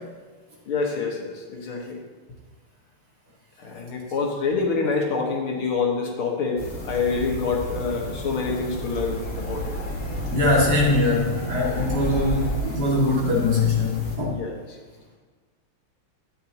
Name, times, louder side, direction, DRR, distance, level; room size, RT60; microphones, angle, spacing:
voice 1, 0.7-2.0 3.6-9.8 10.5-10.7 14.3-14.8, left 4 dB, 90° left, -1 dB, 2.4 m, -27 dB
sound 1, 6.6-14.2, equal, 45° left, 2.0 m, -31 dB
voice 2, 10.3-14.3, left 2 dB, 50° right, -5 dB, 3.0 m, -22 dB
11.5 x 9.2 x 3.0 m, 1.4 s
omnidirectional pair, 2.2 m